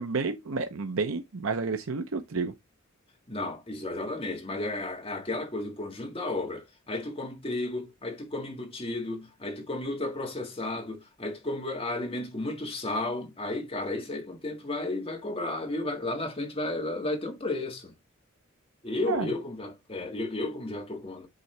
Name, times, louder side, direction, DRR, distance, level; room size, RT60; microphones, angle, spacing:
voice 1, 0.0-2.5 19.1-19.3, right 4 dB, 80° right, 0.7 m, -30 dB
voice 2, 3.3-17.9 18.8-21.3, left 2 dB, 30° left, 1.7 m, -33 dB
8.2 x 3.8 x 3.3 m
head